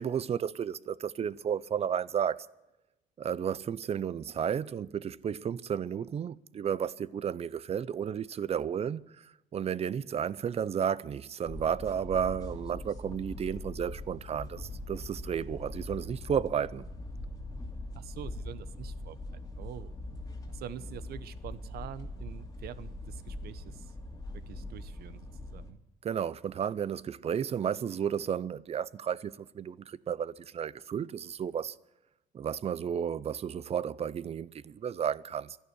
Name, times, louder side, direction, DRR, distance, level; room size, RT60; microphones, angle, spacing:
voice 1, 0.0-2.5 3.2-16.9 26.0-31.8 32.3-35.6, right 8 dB, 35° right, 0.6 m, -33 dB
sound 1, 11.5-25.7, left 2 dB, 20° left, 2.4 m, -42 dB
voice 2, 17.9-19.2 19.5-19.9 20.5-23.9 24.3-25.8, right 11 dB, 65° right, 1.0 m, -45 dB
12.5 x 11.0 x 9.9 m
cardioid pair, 110°, 17 cm